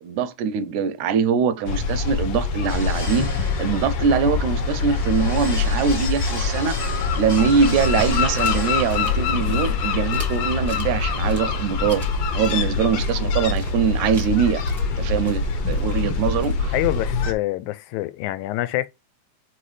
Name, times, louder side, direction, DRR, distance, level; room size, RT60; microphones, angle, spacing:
voice 1, 0.0-6.8 7.2-12.0 12.3-14.6 15.0-16.7, right 7 dB, 85° right, 2.0 m, -23 dB
sound 1, 1.7-17.3, left 4 dB, 65° left, 1.5 m, -24 dB
sound 2, 2.7-12.7, left 3 dB, 40° left, 0.9 m, -36 dB
sound 3, 8.3-17.1, right 2 dB, 10° right, 0.8 m, -42 dB
voice 2, 16.7-18.9, left 16 dB, 85° left, 2.0 m, -26 dB
4.7 x 4.4 x 4.9 m
omnidirectional pair, 3.3 m